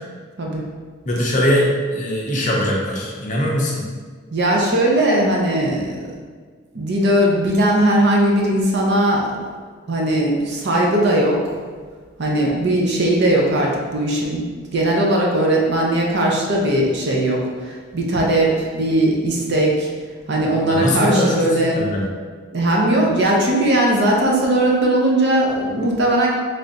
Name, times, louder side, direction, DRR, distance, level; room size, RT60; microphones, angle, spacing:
voice 1, 1.1-1.7 1.9-3.8 20.7-21.5 21.7-22.1, left 1 dB, 35° left, -3 dB, 0.6 m, -20 dB
voice 2, 4.3-6.0 6.7-9.2 9.9-11.5 12.2-14.4 14.7-19.9 20.3-21.8 22.5-26.3, right 1 dB, 50° right, -2 dB, 0.6 m, -18 dB
3.3 x 2.5 x 3.9 m, 1.5 s
head